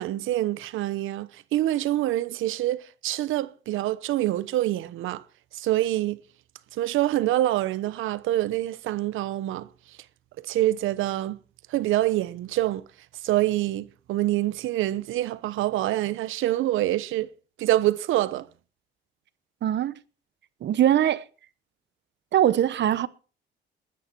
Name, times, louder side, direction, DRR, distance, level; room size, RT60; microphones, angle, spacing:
voice 1, 0.0-5.2 5.5-6.2 6.7-9.7 10.4-11.4 11.7-12.8 13.2-17.3 17.6-18.5, right 14 dB, 90° right, 1.0 m, -26 dB
voice 2, 19.6-19.9 20.6-21.2 22.3-23.1, right 11 dB, 60° right, 1.0 m, -21 dB
21.0 x 9.7 x 4.6 m
cardioid pair, 90°, 20 cm